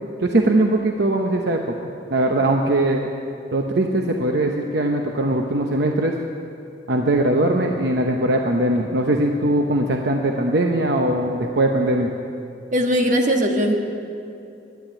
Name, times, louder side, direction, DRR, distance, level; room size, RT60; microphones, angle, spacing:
voice 1, 0.2-3.1 3.5-6.1 6.9-12.1, right 1 dB, 65° right, 2 dB, 0.9 m, -20 dB
voice 2, 12.7-13.8, equal, 45° right, 2 dB, 1.5 m, -19 dB
11.5 x 10.0 x 8.9 m, 2.6 s
head